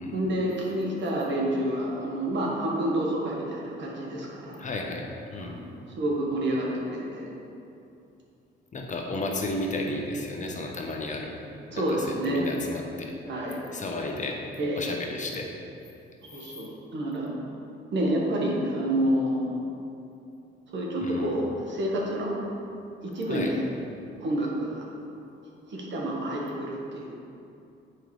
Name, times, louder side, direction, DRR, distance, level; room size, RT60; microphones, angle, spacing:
voice 1, 0.1-4.6 5.4-7.3 11.7-12.4 13.3-13.6 14.6-14.8 16.2-17.3 17.9-19.6 20.7-22.3 23.0-23.6 24.2-24.9 25.7-27.1, right 1 dB, 65° right, -2 dB, 1.3 m, -28 dB
voice 2, 4.6-5.6 8.7-11.3 11.9-13.1 13.7-14.4 14.8-15.5 16.3-16.4 21.0-21.3 23.3-23.5, left 2 dB, 40° left, 1 dB, 0.9 m, -33 dB
7.5 x 5.1 x 3.2 m, 2.7 s
cardioid pair, 90°, 20 cm